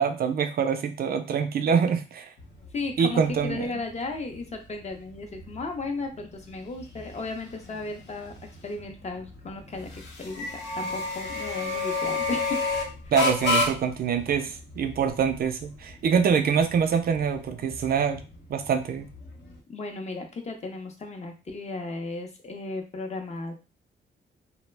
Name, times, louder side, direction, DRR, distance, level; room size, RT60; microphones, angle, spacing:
voice 1, 0.0-2.3 3.0-3.7 13.1-18.2 18.5-19.1, right 6 dB, 55° right, 8 dB, 0.4 m, -25 dB
sound 1, 2.4-19.6, left 3 dB, 70° left, 0.7 m, -33 dB
voice 2, 2.7-8.3 8.6-12.6 19.7-23.5, left 3 dB, 35° left, 4 dB, 0.6 m, -35 dB
2.3 x 2.0 x 3.2 m, 0.31 s
cardioid pair, 100°, 19 cm